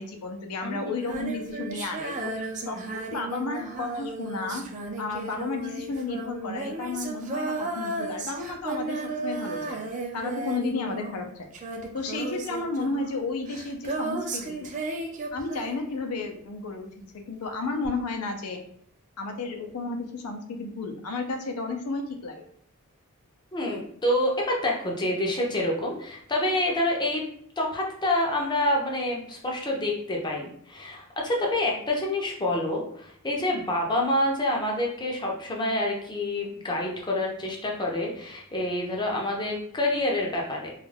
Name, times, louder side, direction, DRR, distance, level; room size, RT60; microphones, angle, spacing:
voice 1, 0.0-4.6 5.0-9.8 10.1-11.5 11.9-14.7 15.3-16.9 17.1-18.6 19.2-22.4, left 3 dB, 75° left, 5 dB, 0.5 m, -32 dB
Female singing, 0.9-16.3 17.8-17.9, right 2 dB, 35° right, 0.4 m, -34 dB
voice 2, 23.5-27.2 27.6-40.7, left 1 dB, 20° left, -1 dB, 0.5 m, -27 dB
2.3 x 2.2 x 3.2 m, 0.65 s
head